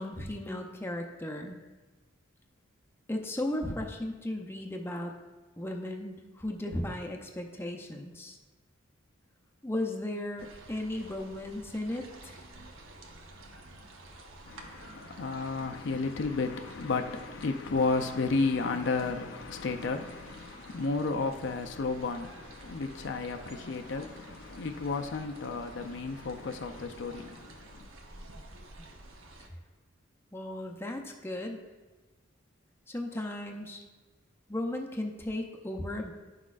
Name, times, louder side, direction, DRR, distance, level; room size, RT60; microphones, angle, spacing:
voice 1, 0.0-1.6 3.1-5.1 5.6-8.4 9.6-12.4 28.8-28.9 30.3-31.6 32.9-33.8 34.5-36.1, left 1 dB, 10° left, 0.5 m, -36 dB
sound 1, 10.4-29.5, right 2 dB, 80° right, 1.0 m, -50 dB
voice 2, 14.5-27.9, left 3 dB, 60° left, 0.4 m, -32 dB
11.0 x 6.0 x 2.4 m
head